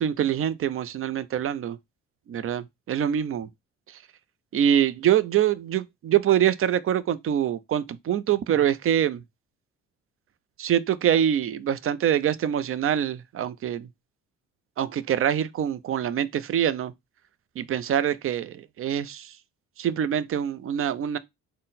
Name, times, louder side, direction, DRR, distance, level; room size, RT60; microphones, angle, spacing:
voice 1, 0.0-1.8 2.3-3.5 3.9-4.0 4.5-9.2 10.6-13.9 14.8-16.9 17.6-19.4 19.8-21.2, right 10 dB, 45° right, 0.4 m, -25 dB
3.8 x 2.1 x 4.0 m
cardioid pair, 90°, 30 cm